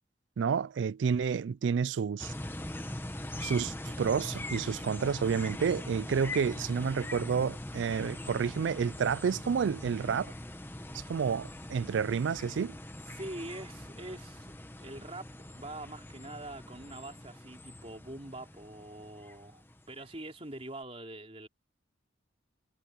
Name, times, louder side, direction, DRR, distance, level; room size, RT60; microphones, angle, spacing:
voice 1, 0.4-2.3 3.4-10.3 11.1-12.8, right 6 dB, 70° right, 0.3 m, -30 dB
sound 1, 2.2-20.1, left 1 dB, 10° left, 1.2 m, -42 dB
voice 2, 13.1-14.5 14.8-21.5, right 1 dB, 30° right, 3.6 m, -44 dB
head